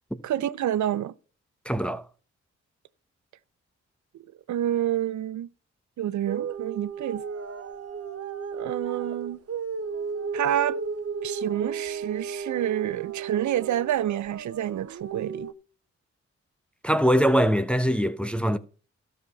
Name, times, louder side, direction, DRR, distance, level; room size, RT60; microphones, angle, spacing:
voice 1, 0.2-1.1 4.1-5.5 6.0-7.2 8.5-9.4 10.3-10.8 11.2-15.5, right 11 dB, 70° right, 0.6 m, -28 dB
voice 2, 1.6-2.0 16.8-18.6, equal, 5° left, 1.0 m, -22 dB
sound 1, 6.3-15.5, right 6 dB, 55° right, 1.1 m, -34 dB
13.0 x 5.8 x 5.5 m
supercardioid pair, 50°, 30 cm